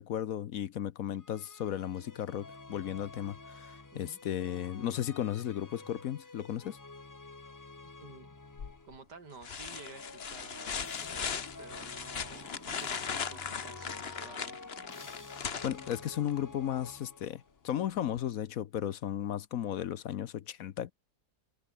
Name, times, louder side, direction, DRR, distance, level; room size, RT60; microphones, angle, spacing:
voice 1, 0.0-6.8 15.6-20.9, left 10 dB, 65° left, 1.1 m, -35 dB
sound 1, 1.2-9.0 9.6-17.6, left 3 dB, 25° left, 0.4 m, -49 dB
voice 2, 8.0-8.4 8.8-14.6, right 4 dB, 80° right, 3.9 m, -51 dB
sound 2, 8.6-9.0 9.4-16.4 18.2-18.3, left 6 dB, 40° left, 1.2 m, -39 dB
omnidirectional pair, 1.8 m